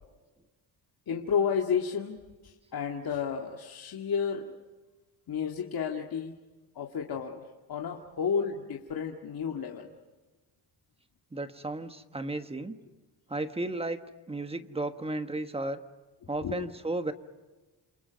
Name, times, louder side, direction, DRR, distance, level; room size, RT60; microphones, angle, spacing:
voice 1, 1.1-2.2 2.4-4.5 5.3-6.4 6.8-7.4 7.7-9.9 16.4-16.7, left 7 dB, 55° left, 1 dB, 2.1 m, -31 dB
voice 2, 11.3-12.8 13.3-14.0 14.3-15.8 16.3-17.1, right 2 dB, 15° right, 8 dB, 1.4 m, -34 dB
29.0 x 28.0 x 5.2 m, 1.2 s
cardioid pair, 140°, 43 cm